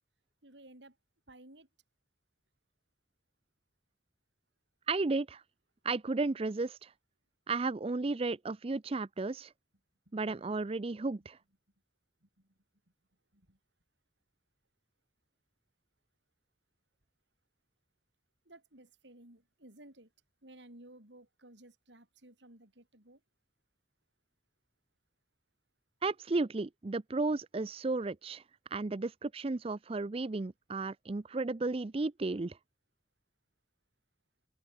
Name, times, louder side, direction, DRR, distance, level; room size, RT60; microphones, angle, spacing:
voice 1, 0.4-1.0 1.3-1.7 12.4-12.5 13.3-13.6 18.5-20.1 20.4-23.2, right 1 dB, 80° right, 5.6 m, -56 dB
voice 2, 4.9-5.4 5.8-6.9 7.5-9.5 10.1-11.4 26.0-28.4 28.7-32.6, right 3 dB, 35° right, 0.5 m, -33 dB
open air
head